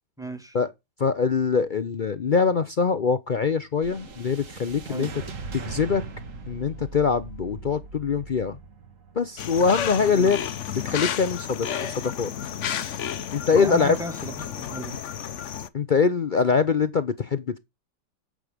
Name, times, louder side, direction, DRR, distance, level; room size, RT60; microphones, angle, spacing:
voice 1, 0.2-0.6 4.9-5.2 10.0-10.4 13.5-15.0, right 1 dB, ahead, 1.7 m, -35 dB
voice 2, 1.0-5.1 5.5-6.0 6.5-8.6 9.2-10.4 10.8-11.7 12.0-12.3 13.3-14.0 15.7-17.6, left 5 dB, 75° left, 0.4 m, -23 dB
sound 1, 3.8-12.2, right 4 dB, 50° right, 1.7 m, -41 dB
sound 2, 9.4-15.7, left 9 dB, 55° left, 0.9 m, -32 dB
11.0 x 7.9 x 5.1 m
omnidirectional pair, 1.8 m